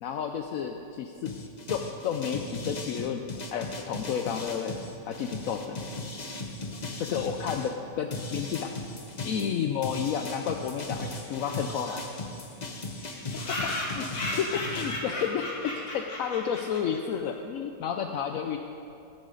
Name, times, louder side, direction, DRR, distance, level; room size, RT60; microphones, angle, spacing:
voice 1, 0.0-1.3 1.7-3.2 3.5-4.8 5.1-5.8 7.0-7.7 8.0-8.7 9.2-12.0 13.5-14.1 14.4-18.6, left 8 dB, 70° left, 5 dB, 0.8 m, -31 dB
sound 1, 1.3-7.7 8.1-15.0, left 2 dB, 35° left, 0.7 m, -37 dB
sound 2, 11.3-11.4 11.6-11.7 11.9-12.0 12.2-12.3 13.0-17.2, left 1 dB, 90° left, 3.1 m, -35 dB
19.0 x 10.5 x 3.9 m, 2.6 s
omnidirectional pair, 1.9 m